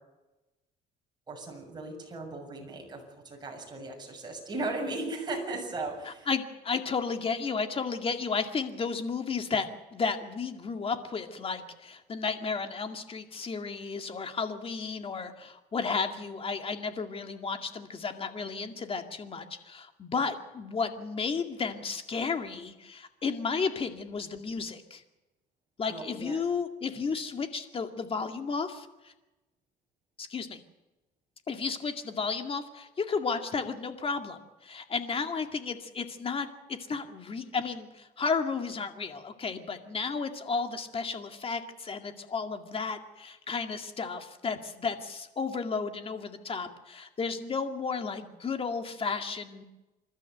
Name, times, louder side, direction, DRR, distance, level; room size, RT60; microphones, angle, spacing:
voice 1, 1.3-6.3 25.9-26.4, right 2 dB, 25° right, 1 dB, 6.9 m, -37 dB
voice 2, 6.1-25.0 25.8-29.1 30.2-30.6 31.5-49.6, left 5 dB, 35° left, 6 dB, 2.2 m, -33 dB
27.5 x 12.5 x 8.0 m, 1.1 s
cardioid pair, 110°, 17 cm